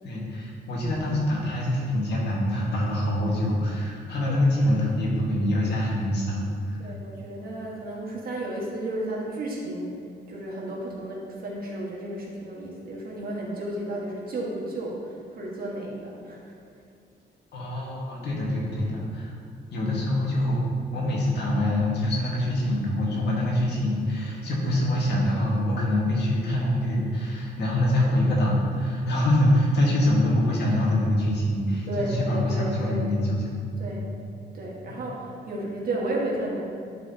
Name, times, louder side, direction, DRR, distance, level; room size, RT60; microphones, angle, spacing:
voice 1, 0.0-6.9 17.5-19.3 19.7-20.6 20.9-34.0 34.9-35.0, left 1 dB, 75° left, -4 dB, 1.8 m, -25 dB
voice 2, 6.8-10.0 10.3-16.6 31.9-33.0 33.8-34.1 34.5-36.6, right 1 dB, 55° right, -3 dB, 1.7 m, -33 dB
10.5 x 4.8 x 2.9 m, 2.3 s
cardioid pair, 130°, 18 cm